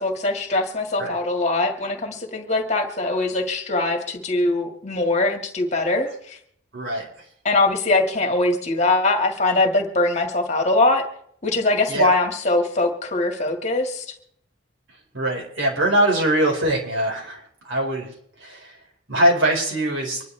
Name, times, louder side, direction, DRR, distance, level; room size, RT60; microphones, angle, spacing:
voice 1, 0.0-6.4 7.4-11.1 11.4-14.1, left 2 dB, 35° left, 3 dB, 1.9 m, -22 dB
voice 2, 6.7-7.1 11.9-12.1 15.1-18.1 18.4-18.7 19.1-20.2, right 1 dB, 80° right, -1 dB, 4.8 m, -22 dB
25.5 x 11.0 x 3.4 m, 0.68 s
head